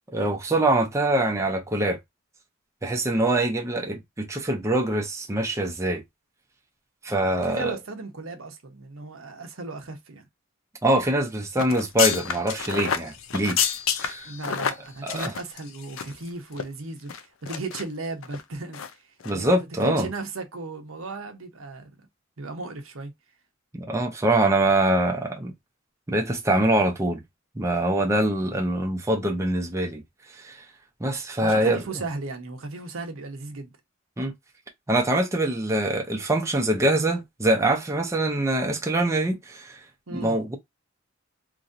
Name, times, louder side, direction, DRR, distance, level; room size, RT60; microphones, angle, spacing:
voice 1, 0.1-2.0 2.8-6.0 7.0-7.8 10.8-13.6 14.0-14.3 15.0-15.3 19.2-20.1 23.7-25.5 26.1-27.2 27.6-30.0 30.3-30.6 31.0-31.8 34.2-34.3 34.9-39.8 40.1-40.6, right 1 dB, 15° right, 0.6 m, -24 dB
voice 2, 7.4-10.3 14.2-18.8 19.3-21.9 22.4-23.1 31.4-33.7 40.1-40.3, right 3 dB, 85° right, 0.9 m, -36 dB
sound 1, 11.6-16.3 16.5-16.6 17.1-17.8 18.2-18.4 18.7-18.9 19.2-19.3, left 7 dB, 70° left, 0.5 m, -29 dB
3.0 x 2.7 x 2.5 m
head